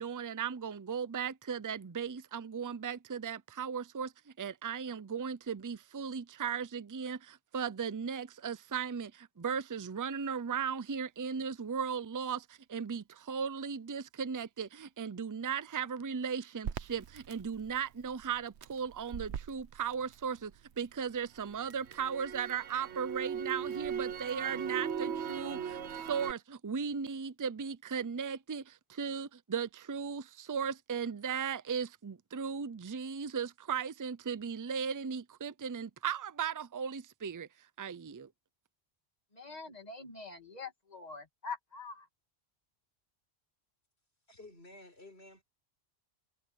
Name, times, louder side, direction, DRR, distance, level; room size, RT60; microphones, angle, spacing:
voice 1, 0.0-4.1 4.4-37.5 37.8-38.3, right 6 dB, 25° right, 0.5 m, -37 dB
Crackle, 16.6-20.8 21.2-26.3, right 8 dB, 90° right, 1.1 m, -39 dB
voice 2, 39.3-42.1, left 4 dB, 40° left, 2.7 m, -44 dB
voice 3, 44.3-45.4, left 2 dB, 75° left, 5.0 m, -53 dB
omnidirectional pair, 1.1 m